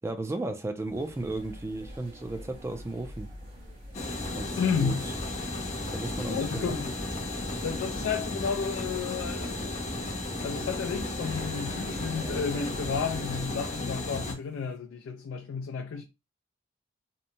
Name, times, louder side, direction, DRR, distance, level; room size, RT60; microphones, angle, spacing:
voice 1, 0.0-3.3 4.4-5.1 5.9-6.8, right 2 dB, 15° right, 0.4 m, -35 dB
sound 1, 0.8-13.8, equal, 55° right, 1.3 m, -45 dB
sound 2, 3.9-14.4, left 2 dB, 35° left, 0.6 m, -34 dB
voice 2, 4.6-5.0 6.3-6.9 7.6-9.9 10.4-16.0, left 6 dB, 90° left, 0.3 m, -32 dB
2.8 x 2.1 x 2.6 m
head